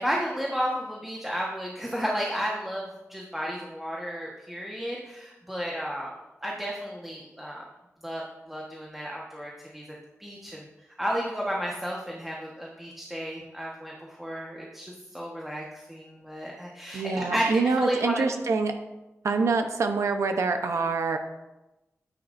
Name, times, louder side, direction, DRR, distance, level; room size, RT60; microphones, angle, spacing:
voice 1, 0.0-6.1 6.4-7.6 8.0-9.8 10.2-10.7 11.0-18.2, equal, 5° right, -3 dB, 1.4 m, -32 dB
voice 2, 16.9-18.7 19.2-21.2, right 4 dB, 90° right, 6 dB, 0.9 m, -25 dB
12.5 x 9.7 x 2.7 m, 1.0 s
wide cardioid pair, 105°, 5 cm